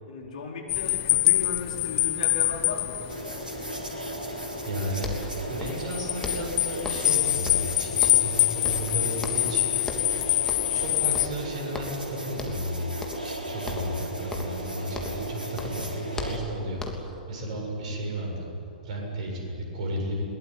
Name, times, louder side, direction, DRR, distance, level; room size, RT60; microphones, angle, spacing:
voice 1, 0.1-3.1, left 3 dB, 55° left, 1 dB, 4.7 m, -36 dB
sound 1, 0.7-11.3, left 19 dB, 35° left, 0.6 m, -25 dB
sound 2, 3.1-16.4, right 1 dB, 80° right, 4.1 m, -36 dB
voice 2, 4.6-9.7 10.6-12.9 13.2-16.8 17.1-18.5 18.8-20.2, right 1 dB, 50° right, 0 dB, 7.5 m, -33 dB
sound 3, 5.0-5.9 6.2-7.2 7.5-8.4 8.6-9.6 9.8-10.2 10.5-10.8 11.1-12.1 12.4-12.7 13.0-13.4 13.7-15.3 15.6-17.2, left 2 dB, 10° left, 3.0 m, -37 dB
22.0 x 21.0 x 9.6 m, 2.9 s
figure-of-eight pair, 105°, 5 cm